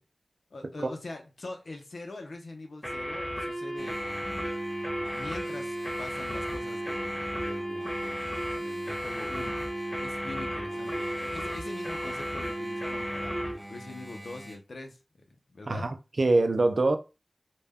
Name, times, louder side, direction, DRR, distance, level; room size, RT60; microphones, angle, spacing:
voice 1, 0.5-4.5 5.1-9.6 10.0-15.0 15.3-15.8, left 2 dB, 90° left, 0.5 m, -43 dB
sound 1, 2.8-13.6, equal, 25° left, 1.0 m, -34 dB
Engine, 3.8-14.6, equal, 10° right, 0.8 m, -43 dB
voice 2, 15.7-17.0, right 2 dB, 75° right, 0.3 m, -24 dB
2.1 x 2.0 x 3.4 m
cardioid pair, 40°, 0 cm